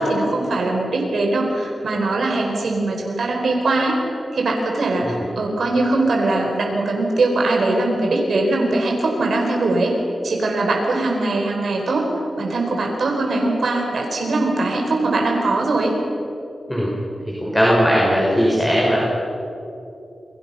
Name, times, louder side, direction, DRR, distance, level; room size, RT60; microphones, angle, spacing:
voice 1, 0.0-4.0 4.3-9.9 10.2-12.1 12.4-15.9, right 2 dB, 80° right, 0 dB, 4.7 m, -21 dB
voice 2, 17.4-19.0, equal, 5° left, -4 dB, 5.5 m, -18 dB
29.0 x 23.5 x 5.7 m, 2.8 s
wide cardioid pair, 85°, 0 cm